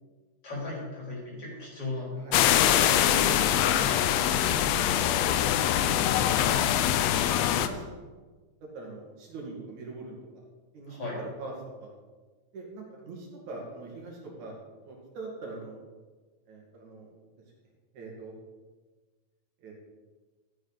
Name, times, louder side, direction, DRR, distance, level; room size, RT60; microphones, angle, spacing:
voice 1, 0.4-2.1 10.9-11.2, left 2 dB, 45° left, -5 dB, 4.5 m, -37 dB
sound 1, 2.3-7.7, left 10 dB, 80° left, 1.6 m, -23 dB
voice 2, 3.0-3.8 4.4-5.2 5.8-6.5 7.1-8.0 8.7-10.4 10.7-11.5 11.8-11.9 12.5-14.6 14.8-15.8 16.5-17.1 17.9-18.3 19.6-19.7, right 3 dB, 75° right, -2 dB, 3.4 m, -42 dB
13.0 x 8.8 x 4.0 m, 1.3 s
omnidirectional pair, 3.5 m